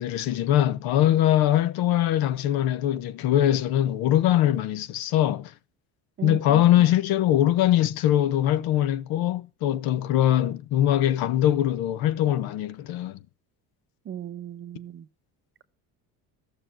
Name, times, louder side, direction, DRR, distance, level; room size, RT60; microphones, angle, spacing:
voice 1, 0.0-5.5 6.2-13.2, left 12 dB, 70° left, 1.1 m, -22 dB
voice 2, 6.2-6.9 14.0-15.1, right 9 dB, 30° right, 0.8 m, -37 dB
14.5 x 6.7 x 7.6 m
cardioid pair, 175°, 38 cm